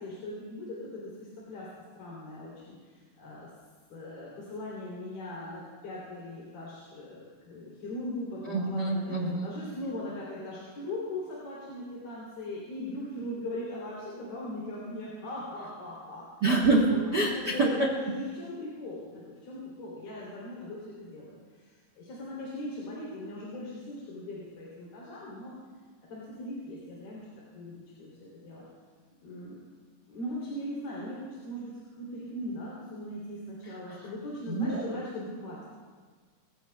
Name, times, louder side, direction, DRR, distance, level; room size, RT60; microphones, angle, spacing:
voice 1, 0.0-1.7 2.0-3.5 3.9-16.3 16.9-25.6 26.1-27.3 27.5-28.6 29.2-29.6 30.1-35.7, left 1 dB, 70° left, -6 dB, 4.9 m, -40 dB
voice 2, 8.4-9.5 16.4-17.9 33.6-34.1 34.5-34.8, right 2 dB, 65° right, -2 dB, 1.0 m, -26 dB
27.5 x 15.5 x 2.3 m, 1.5 s
omnidirectional pair, 4.3 m